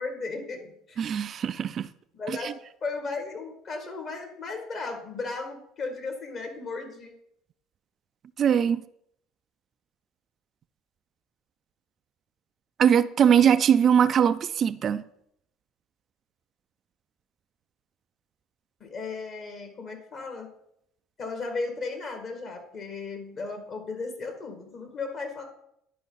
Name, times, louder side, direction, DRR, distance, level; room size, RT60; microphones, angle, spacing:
voice 1, 0.0-1.0 2.1-2.5 2.8-7.1 18.8-20.5 21.2-25.4, left 3 dB, 50° left, 2.0 m, -35 dB
voice 2, 1.0-1.9 8.4-8.8 12.8-15.0, right 8 dB, 50° right, 0.3 m, -21 dB
11.0 x 4.8 x 4.0 m
hypercardioid pair, 75°, 0 cm